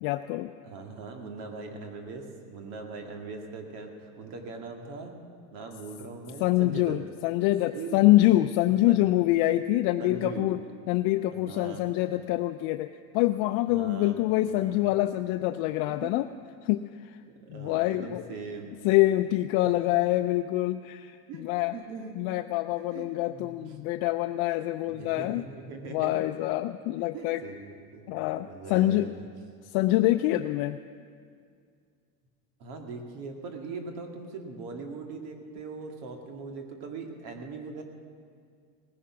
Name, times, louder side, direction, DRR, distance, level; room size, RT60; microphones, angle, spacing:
voice 1, 0.0-0.5 6.4-10.6 10.9-16.3 16.6-17.2 17.5-18.2 18.8-21.7 22.2-25.4 25.9-27.4 28.1-29.1 29.6-30.8, left 16 dB, 65° left, 8 dB, 0.5 m, -25 dB
voice 2, 0.7-5.1 5.5-7.0 7.7-8.2 8.9-9.2 10.0-10.6 11.3-11.9 13.7-14.2 14.5-14.9 15.8-16.2 17.4-18.7 19.7-19.9 21.3-21.4 21.7-22.1 22.9-23.6 24.9-26.2 27.1-29.3 32.6-37.8, right 4 dB, 65° right, 3 dB, 2.2 m, -40 dB
18.0 x 10.5 x 6.1 m, 2.2 s
cardioid pair, 140°, 40 cm